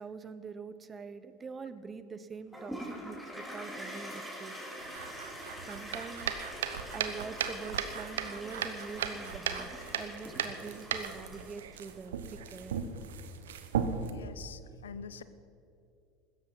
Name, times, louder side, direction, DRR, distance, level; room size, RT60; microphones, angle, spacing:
voice 1, 0.0-4.5 5.6-6.4 6.9-12.8, right 5 dB, 25° right, 13 dB, 0.9 m, -44 dB
Toilet flush, 2.5-11.7, equal, 5° right, 4.5 m, -44 dB
sound 1, 4.8-14.1, right 7 dB, 75° right, 1.0 m, -37 dB
voice 2, 14.1-15.2, left 6 dB, 80° left, 14 dB, 0.6 m, -45 dB
16.0 x 13.5 x 5.5 m, 2.6 s
hypercardioid pair, 75°, 0 cm